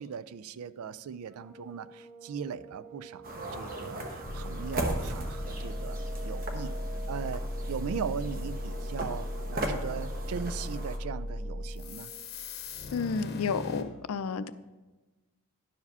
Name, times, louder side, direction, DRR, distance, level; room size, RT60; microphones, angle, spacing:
voice 1, 0.0-6.0 6.2-6.7 7.1-7.4 7.7-12.1, right 7 dB, 85° right, 16 dB, 0.4 m, -39 dB
sound 1, 1.2-12.3, right 5 dB, 15° right, 1.2 m, -50 dB
sound 2, 3.2-11.0, right 1 dB, 40° right, 1.1 m, -38 dB
sound 3, 4.2-13.8, left 1 dB, 50° left, 0.8 m, -37 dB
voice 2, 12.9-14.5, left 5 dB, 80° left, 14 dB, 0.4 m, -31 dB
10.5 x 4.8 x 5.4 m, 1.2 s
head